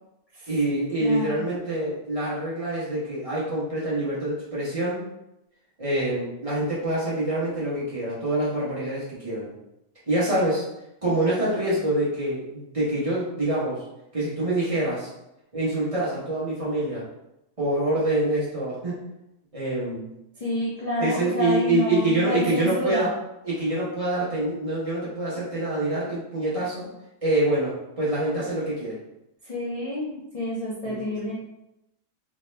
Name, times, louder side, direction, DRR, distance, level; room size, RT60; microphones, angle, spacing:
voice 1, 0.5-5.0 5.8-9.5 10.1-10.7 11.0-13.8 14.1-15.1 15.5-17.0 17.6-19.0 19.5-20.1 21.0-23.1 23.4-26.9 27.2-29.0 30.8-31.1, right 1 dB, 25° right, -9 dB, 1.1 m, -26 dB
voice 2, 1.0-1.4 20.4-23.1 29.4-31.3, left 1 dB, 45° left, -6 dB, 0.4 m, -28 dB
3.3 x 2.8 x 3.2 m, 0.88 s
omnidirectional pair, 1.7 m